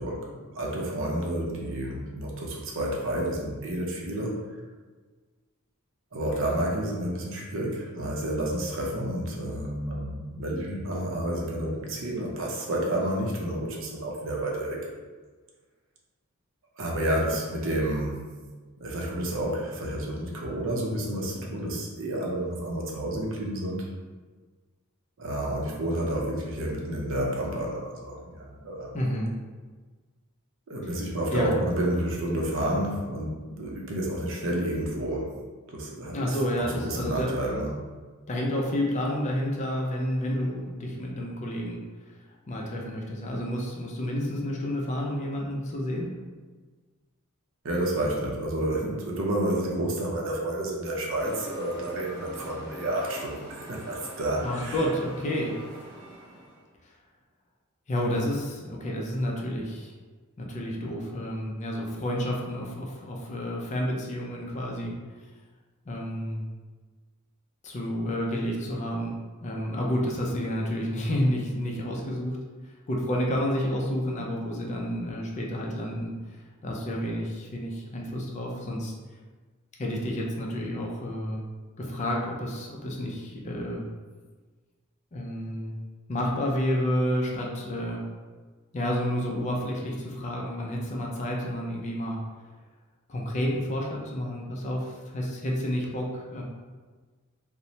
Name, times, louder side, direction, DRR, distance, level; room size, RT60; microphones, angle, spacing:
voice 1, 0.0-4.6 6.1-14.9 16.8-18.2 18.8-23.9 25.2-29.0 30.7-35.3 35.7-37.8 47.6-54.8, right 1 dB, 65° right, -1 dB, 0.5 m, -30 dB
voice 2, 28.9-29.3 31.3-31.6 36.1-37.3 38.3-41.8 42.1-42.2 42.5-46.1 54.4-55.6 57.9-59.9 60.4-64.9 65.9-66.4 67.6-69.1 69.4-72.4 72.9-76.1 76.6-78.9 79.8-81.4 81.8-83.8 85.1-85.8 86.1-88.0 88.7-92.2 93.1-96.4, equal, 35° left, -1 dB, 0.4 m, -30 dB
sound 1, 51.2-56.7, right 1 dB, 10° left, 0.9 m, -43 dB
3.0 x 2.0 x 2.6 m, 1.4 s
head